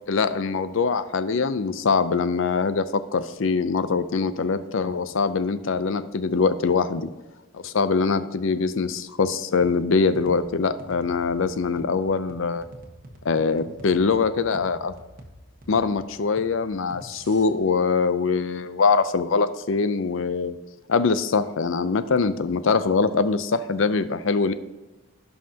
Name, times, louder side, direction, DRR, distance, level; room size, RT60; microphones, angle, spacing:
voice 1, 0.1-7.1 7.5-12.7 13.2-14.9 15.7-20.6 20.9-24.5, left 4 dB, 65° left, 13 dB, 0.5 m, -23 dB
sound 1, 9.6-17.5, right 1 dB, 40° right, 1.2 m, -46 dB
16.5 x 5.6 x 2.8 m, 1.1 s
head